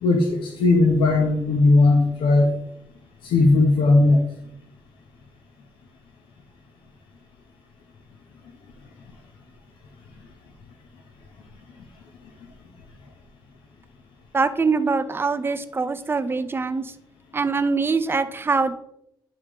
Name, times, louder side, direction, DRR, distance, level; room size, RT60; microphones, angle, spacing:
voice 1, 0.0-2.5 3.2-4.2, left 2 dB, 75° left, 2 dB, 1.0 m, -17 dB
voice 2, 14.3-16.9 17.3-18.7, right 4 dB, 25° right, 10 dB, 0.6 m, -23 dB
9.6 x 3.5 x 3.7 m, 0.78 s
supercardioid pair, 65°, 9 cm